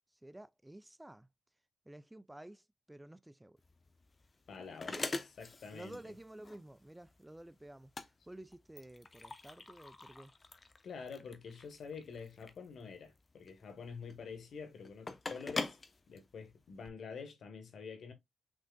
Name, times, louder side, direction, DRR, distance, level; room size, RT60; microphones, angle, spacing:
voice 1, 0.1-1.3 1.9-3.6 4.9-5.1 5.7-10.3, right 1 dB, 10° right, 0.4 m, -52 dB
sound 1, 3.6-16.9, left 3 dB, 40° left, 0.8 m, -45 dB
voice 2, 4.5-4.9 5.4-6.1 10.8-15.8 16.1-18.1, left 5 dB, 70° left, 1.3 m, -47 dB
6.2 x 3.6 x 2.3 m
supercardioid pair, 55°, 0 cm